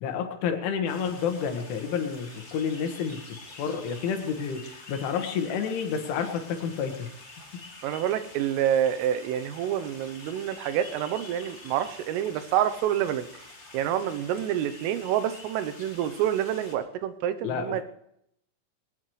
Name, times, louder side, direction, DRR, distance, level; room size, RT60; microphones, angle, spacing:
voice 1, 0.0-3.2 3.6-7.1 7.5-7.6 17.4-17.8, left 6 dB, 75° left, 5 dB, 3.9 m, -30 dB
sound 1, 0.9-16.7, left 2 dB, 25° left, 1.4 m, -47 dB
voice 2, 7.8-13.3 13.7-17.8, right 10 dB, 85° right, 10 dB, 3.4 m, -27 dB
21.0 x 20.0 x 3.2 m, 0.76 s
omnidirectional pair, 5.8 m